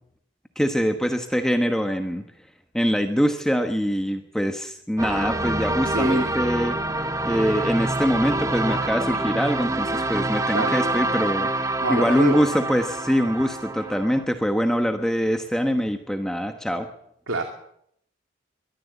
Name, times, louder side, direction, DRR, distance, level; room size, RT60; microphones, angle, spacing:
voice 1, 0.6-2.2 2.7-6.8 7.2-11.5 11.9-16.9, equal, 5° left, 5 dB, 1.2 m, -23 dB
sound 1, 5.0-14.2, right 2 dB, 15° right, 0.9 m, -26 dB
voice 2, 5.9-6.3 10.5-10.7 11.8-12.5 17.3-17.4, right 2 dB, 90° right, 4 dB, 2.5 m, -26 dB
22.5 x 14.0 x 8.3 m, 0.71 s
head